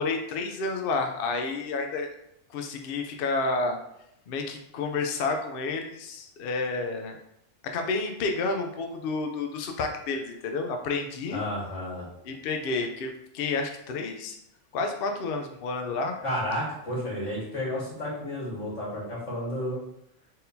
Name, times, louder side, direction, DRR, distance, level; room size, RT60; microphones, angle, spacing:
voice 1, 0.0-2.1 2.5-3.8 4.3-7.1 7.7-11.4 12.2-14.3 14.7-16.1, left 3 dB, 60° left, 4 dB, 0.7 m, -30 dB
voice 2, 11.3-12.1 16.2-19.8, left 1 dB, 85° left, -6 dB, 2.1 m, -32 dB
4.3 x 3.6 x 2.7 m, 0.79 s
omnidirectional pair, 1.2 m